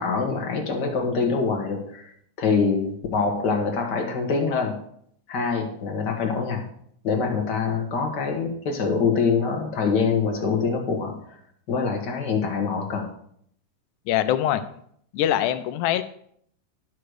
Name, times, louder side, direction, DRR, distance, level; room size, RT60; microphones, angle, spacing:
voice 1, 0.0-2.0 2.4-4.8 5.3-6.6 7.0-11.4 11.7-13.1, left 5 dB, 50° left, 2 dB, 1.5 m, -24 dB
voice 2, 14.1-14.6 15.1-16.0, left 11 dB, 85° left, 11 dB, 2.1 m, -23 dB
10.5 x 6.5 x 4.8 m, 0.67 s
omnidirectional pair, 3.4 m